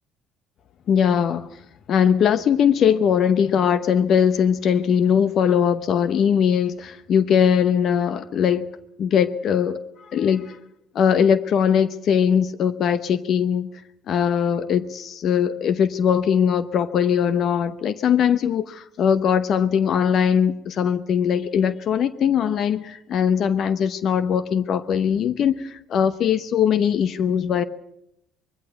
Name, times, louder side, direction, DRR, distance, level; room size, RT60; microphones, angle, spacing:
voice 1, 0.9-1.5 1.9-8.7 9.0-9.8 10.1-10.6 10.9-13.7 14.1-27.6, left 8 dB, 60° left, 0.8 m, -20 dB
21.5 x 16.0 x 8.0 m
supercardioid pair, 75°, 0 cm